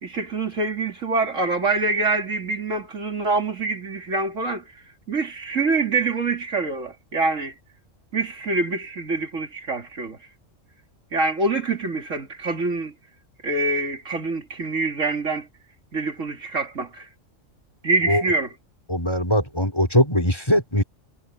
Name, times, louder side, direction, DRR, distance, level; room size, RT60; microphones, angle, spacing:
voice 1, 0.0-4.6 5.1-7.5 8.1-10.2 11.1-12.9 13.4-15.5 15.9-17.1 17.8-18.5, right 3 dB, 70° right, 2.9 m, -25 dB
voice 2, 18.9-20.8, equal, 20° left, 4.9 m, -20 dB
omnidirectional pair, 1.3 m